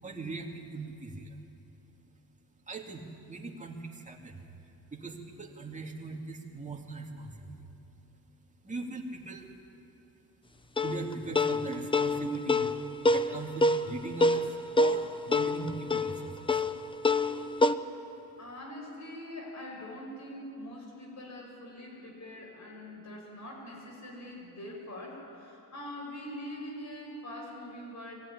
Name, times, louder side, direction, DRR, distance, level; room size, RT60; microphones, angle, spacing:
voice 1, 0.0-1.4 2.7-7.7 8.3-9.6 10.8-12.7 13.1-16.6, right 3 dB, 20° right, 1 dB, 2.4 m, -40 dB
sound 1, 10.8-17.7, left 2 dB, 15° left, 0.6 m, -27 dB
voice 2, 18.4-28.1, left 1 dB, 50° left, 1 dB, 6.1 m, -43 dB
22.0 x 15.5 x 10.0 m, 2.8 s
cardioid pair, 110°, 37 cm